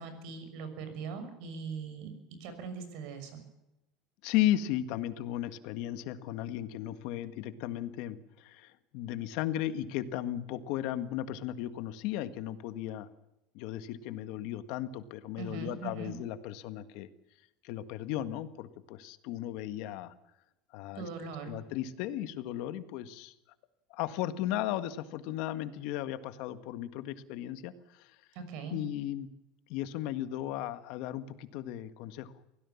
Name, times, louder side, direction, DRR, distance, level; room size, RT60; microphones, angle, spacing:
voice 1, 0.0-2.1 2.4-3.4 15.4-16.1 20.9-21.6 28.3-28.8, right 5 dB, 60° right, 9 dB, 6.4 m, -40 dB
voice 2, 4.2-13.1 13.5-17.1 17.6-20.1 20.7-21.1 21.5-23.3 23.9-28.2 28.7-29.3 29.7-32.3, left 12 dB, 60° left, 11 dB, 1.7 m, -35 dB
24.0 x 17.0 x 7.2 m, 0.92 s
cardioid pair, 150°, 0 cm